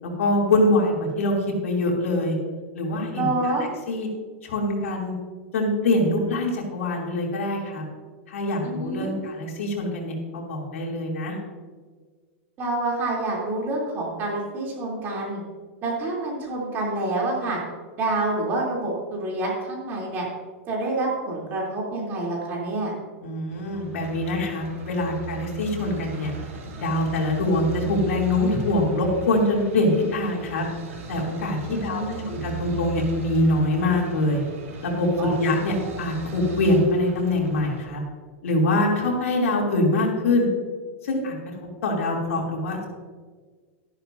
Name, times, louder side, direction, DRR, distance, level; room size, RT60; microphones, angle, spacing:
voice 1, 0.0-2.4 2.7-4.1 4.4-5.1 5.5-7.8 8.3-11.4 23.2-26.3 26.8-30.6 31.1-34.4 34.8-38.0 38.4-40.5 41.0-41.3 41.8-42.9, left 1 dB, 90° left, -1 dB, 3.0 m, -24 dB
voice 2, 3.1-3.6 8.6-9.1 12.6-15.4 15.8-17.6 18.0-20.3 20.7-22.9 31.6-32.3 35.2-35.3 35.8-35.9, right 2 dB, 25° right, -3 dB, 3.3 m, -27 dB
sound 1, 23.5-37.9, right 6 dB, 85° right, 2.7 m, -38 dB
13.0 x 11.0 x 2.7 m, 1.5 s
supercardioid pair, 155°, 7 cm